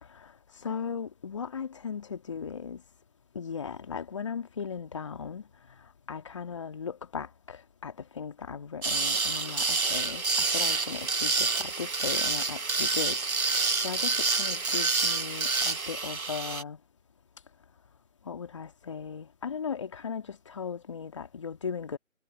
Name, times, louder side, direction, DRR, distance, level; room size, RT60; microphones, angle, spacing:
voice 1, 0.6-2.8 3.3-5.4 6.1-13.2 13.8-16.8 18.3-22.0, left 6 dB, 20° left, 2.5 m, -37 dB
sound 1, 8.8-16.6, right 4 dB, 85° right, 1.3 m, -28 dB
figure-of-eight pair, 165°, 41 cm